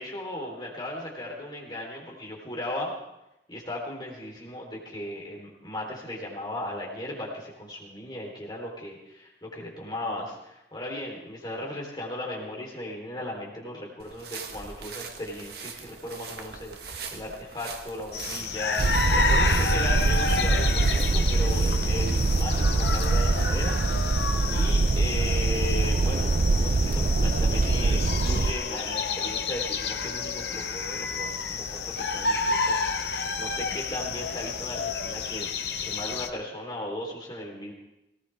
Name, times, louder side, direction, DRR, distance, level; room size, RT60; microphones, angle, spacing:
voice 1, 0.0-2.9 3.5-18.8 19.1-23.7 24.5-37.7, left 1 dB, 25° left, -2 dB, 3.8 m, -37 dB
steps in the grass, 14.0-23.4, right 5 dB, 65° right, 1.4 m, -42 dB
sound 1, 18.1-36.3, left 4 dB, 75° left, 1.0 m, -30 dB
sound 2, 18.8-28.5, right 3 dB, 45° right, 0.4 m, -24 dB
18.5 x 18.5 x 3.6 m, 0.88 s
head